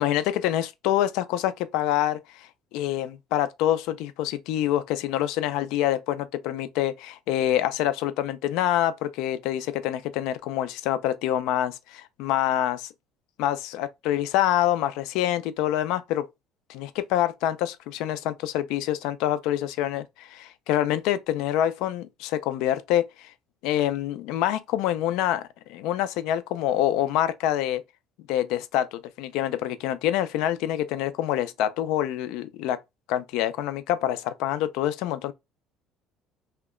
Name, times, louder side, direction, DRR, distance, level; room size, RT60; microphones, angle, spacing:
voice 1, 0.0-12.9 13.4-16.3 16.7-23.3 23.6-25.4 25.7-27.8 28.3-32.8 33.1-35.3, left 12 dB, 80° left, 0.4 m, -26 dB
2.8 x 2.1 x 3.5 m
cardioid pair, 145°, 0 cm